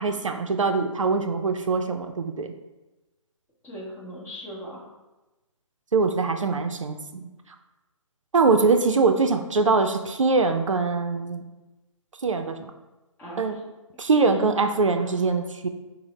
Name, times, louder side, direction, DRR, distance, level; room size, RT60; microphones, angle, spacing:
voice 1, 0.0-2.5 5.9-7.3 8.3-11.5 12.2-12.7 13.4-13.6 14.0-15.7, right 4 dB, 70° right, 6 dB, 0.4 m, -23 dB
voice 2, 3.6-4.9 13.2-13.6 14.1-14.4 15.0-15.2, equal, 10° left, -5 dB, 0.8 m, -39 dB
5.5 x 2.0 x 4.0 m, 1.1 s
figure-of-eight pair, 135°, 17 cm